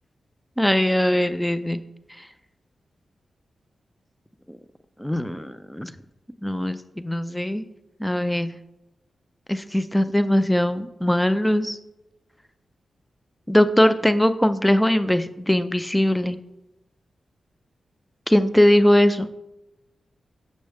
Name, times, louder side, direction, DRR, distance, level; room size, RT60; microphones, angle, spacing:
voice 1, 0.6-1.8 5.0-5.9 6.4-7.6 8.0-8.6 9.5-11.8 13.5-16.4 18.3-19.3, left 1 dB, 5° left, 11 dB, 0.4 m, -20 dB
6.6 x 6.2 x 3.4 m, 0.93 s
wide cardioid pair, 120°, 0 cm